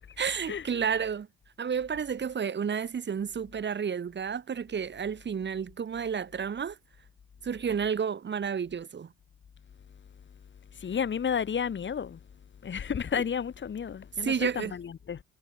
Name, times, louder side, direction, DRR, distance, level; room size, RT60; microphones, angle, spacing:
voice 1, 0.2-1.3 1.6-6.8 7.4-9.1 14.2-14.7, right 7 dB, 35° right, 1.1 m, -31 dB
voice 2, 10.8-12.2 12.6-15.2, left 7 dB, 40° left, 1.1 m, -32 dB
cardioid pair, 90°, 30 cm